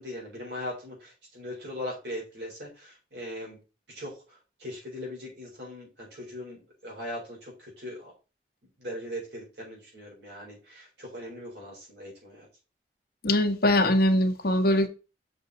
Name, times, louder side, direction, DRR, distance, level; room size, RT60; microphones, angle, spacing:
voice 1, 0.0-3.6 3.9-8.1 8.8-12.5, left 1 dB, 70° right, 4.2 m, -40 dB
voice 2, 13.2-14.9, left 1 dB, 55° left, 1.2 m, -22 dB
6.9 x 5.3 x 4.0 m
head